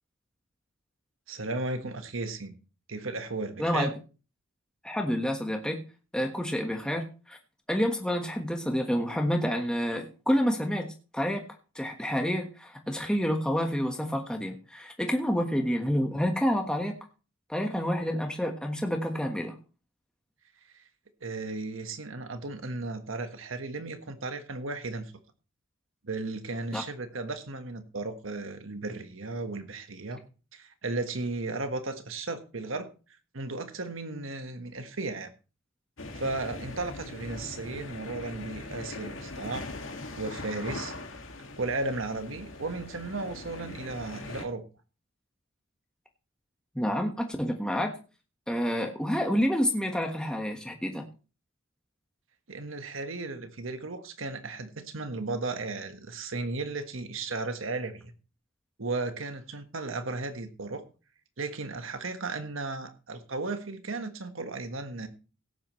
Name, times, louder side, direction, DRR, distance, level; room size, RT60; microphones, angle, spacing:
voice 1, 1.3-2.6 2.9-3.9 20.7-20.8 21.2-25.1 26.0-30.2 30.5-32.9 33.3-35.3 36.1-39.7 40.2-40.9 41.6-44.6 52.5-58.1 58.8-60.8 61.4-65.1, right 3 dB, 85° right, 8 dB, 1.5 m, -35 dB
voice 2, 3.6-3.9 4.8-5.8 6.1-7.4 7.7-10.9 11.1-11.4 11.7-17.0 17.5-19.5 26.7-26.8 46.7-47.9 48.5-51.0, equal, 5° left, 2 dB, 1.3 m, -28 dB
sound 1, 36.0-44.4, left 2 dB, 80° left, 2.1 m, -41 dB
17.0 x 9.0 x 3.2 m, 0.34 s
head